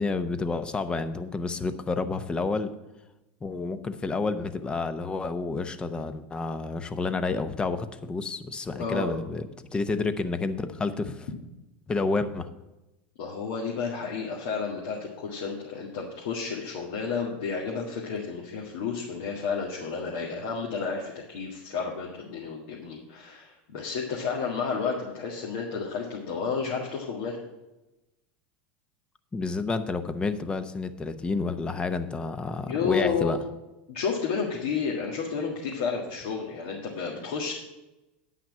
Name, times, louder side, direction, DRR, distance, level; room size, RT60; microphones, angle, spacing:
voice 1, 0.0-2.7 3.4-9.5 9.7-11.3 11.9-12.5 29.3-33.4, left 3 dB, 15° left, 11 dB, 0.7 m, -29 dB
voice 2, 8.8-9.1 13.2-27.4 32.7-33.3 33.9-37.5, left 5 dB, 70° left, -2 dB, 1.8 m, -31 dB
9.1 x 5.8 x 7.4 m, 1.0 s
supercardioid pair, 125°, 6 cm